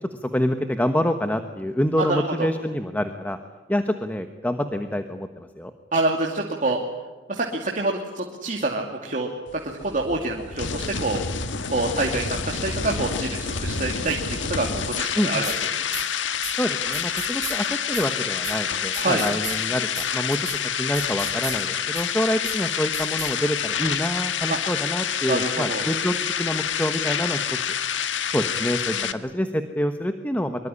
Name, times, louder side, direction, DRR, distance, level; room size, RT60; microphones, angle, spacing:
voice 1, 0.0-3.4 3.7-5.7 15.1-15.4 16.6-27.4 28.3-30.7, equal, 10° left, 7 dB, 1.3 m, -27 dB
voice 2, 2.0-2.5 5.9-6.8 7.3-9.3 9.6-11.2 11.7-15.5 15.8-15.9 19.0-19.2 24.5-24.6 25.3-25.8 28.9-29.2, right 2 dB, 45° right, 0 dB, 2.7 m, -26 dB
sound 1, 9.5-29.1, left 7 dB, 90° left, 1.5 m, -28 dB
sound 2, 15.4-15.6 15.9-16.0 16.4-16.5 16.9-17.6 17.9-18.1 18.4-18.5 18.9-19.6 20.0-20.1 20.3-20.6 20.9-21.6 22.0-22.1 22.4-22.6 22.9-23.3, right 6 dB, 20° right, 3.3 m, -34 dB
25.0 x 23.5 x 10.0 m, 1.2 s
head